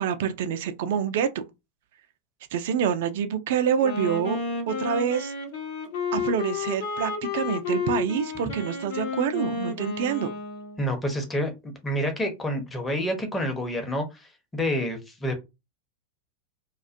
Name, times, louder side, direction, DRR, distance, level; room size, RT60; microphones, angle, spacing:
voice 1, 0.0-1.4 2.5-4.4 4.7-5.3 6.1-10.3, right 8 dB, 55° right, 0.3 m, -26 dB
Wind instrument woodwind instrument, 3.7-10.9, left 5 dB, 50° left, 0.8 m, -31 dB
voice 2, 10.8-15.4, equal, 10° left, 0.7 m, -28 dB
2.3 x 2.2 x 2.5 m
figure-of-eight pair, 90°, 0 cm